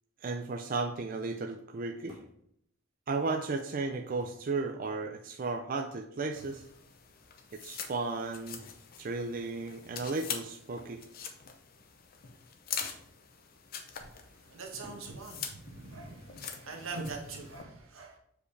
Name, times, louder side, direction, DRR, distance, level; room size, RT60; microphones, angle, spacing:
voice 1, 0.2-2.2 3.1-6.6 7.5-8.6 9.0-11.0, right 3 dB, 45° right, 3 dB, 0.4 m, -34 dB
sound 1, 2.1-2.4 3.5-3.6 4.2-4.6 6.4-6.7 8.6-8.9 9.9-10.0 10.8-11.1 12.8-13.1 14.8-15.1 16.7-17.1, equal, 25° left, 2.2 m, -54 dB
sound 2, 6.3-17.6, left 7 dB, 45° left, 0.6 m, -44 dB
voice 2, 14.2-18.2, right 3 dB, 85° right, 1 dB, 1.4 m, -43 dB
6.9 x 4.9 x 3.3 m, 0.72 s
head